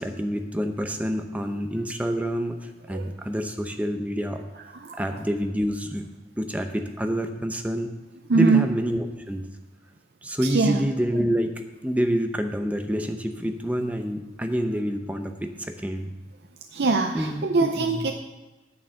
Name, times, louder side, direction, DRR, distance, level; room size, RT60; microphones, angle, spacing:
voice 1, 0.0-4.4 4.9-6.1 6.4-7.9 8.3-9.5 10.2-16.1 17.1-18.1, equal, 10° right, 6 dB, 0.7 m, -27 dB
voice 2, 8.3-8.6 10.4-10.8 16.7-18.1, right 4 dB, 65° right, 4 dB, 0.6 m, -22 dB
9.4 x 6.9 x 6.4 m, 1.1 s
head